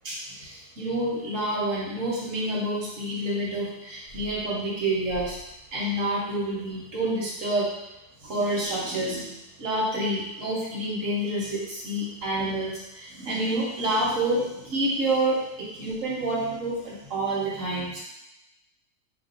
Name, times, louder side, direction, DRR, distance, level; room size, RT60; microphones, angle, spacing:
voice 1, 0.0-5.4 5.7-7.7 8.2-18.0, right 1 dB, 50° right, -5 dB, 1.2 m, -28 dB
3.5 x 2.6 x 3.9 m, 0.88 s
omnidirectional pair, 2.2 m